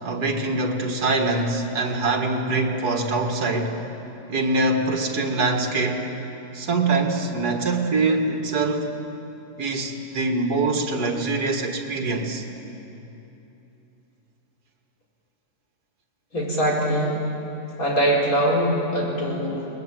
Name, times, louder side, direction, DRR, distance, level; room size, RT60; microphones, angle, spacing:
voice 1, 0.0-3.8 4.3-6.1 6.5-8.9 9.6-12.4, right 3 dB, 80° right, 3 dB, 2.2 m, -24 dB
voice 2, 16.3-17.2 17.8-19.7, right 1 dB, 60° left, -4 dB, 5.1 m, -22 dB
22.5 x 20.0 x 9.1 m, 3.0 s
omnidirectional pair, 1.6 m